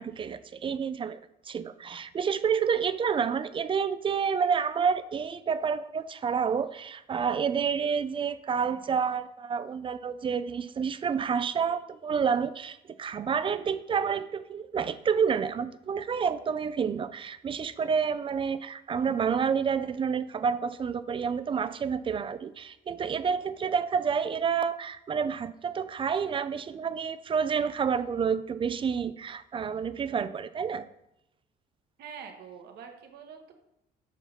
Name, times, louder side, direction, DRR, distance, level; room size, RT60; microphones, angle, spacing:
voice 1, 0.0-30.9, right 6 dB, 30° right, 13 dB, 0.4 m, -29 dB
voice 2, 32.0-33.5, right 6 dB, 70° right, 4 dB, 1.3 m, -45 dB
7.1 x 5.8 x 4.0 m, 0.84 s
cardioid pair, 110°, 17 cm